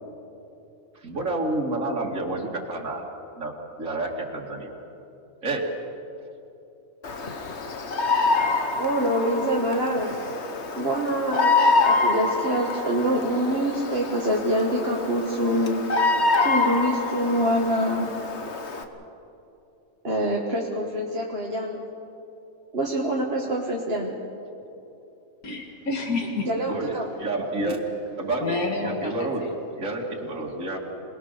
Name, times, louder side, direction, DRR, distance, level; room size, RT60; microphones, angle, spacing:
voice 1, 0.9-3.0 3.4-4.7 5.4-5.8 26.6-27.8 28.2-29.4 29.8-30.8, right 2 dB, 65° right, -1 dB, 2.7 m, -29 dB
Bird vocalization bird call bird song, 7.0-18.8, left 3 dB, 55° left, 1.5 m, -26 dB
voice 2, 8.7-10.2 10.8-11.5 11.8-15.8 16.4-18.1 20.0-21.8 22.7-24.1 26.4-27.0, equal, 45° right, -3 dB, 2.0 m, -25 dB
voice 3, 25.4-26.5 27.6-27.7 28.4-29.5, left 3 dB, 90° left, 2 dB, 2.3 m, -29 dB
27.0 x 19.5 x 6.7 m, 2.8 s
omnidirectional pair, 1.5 m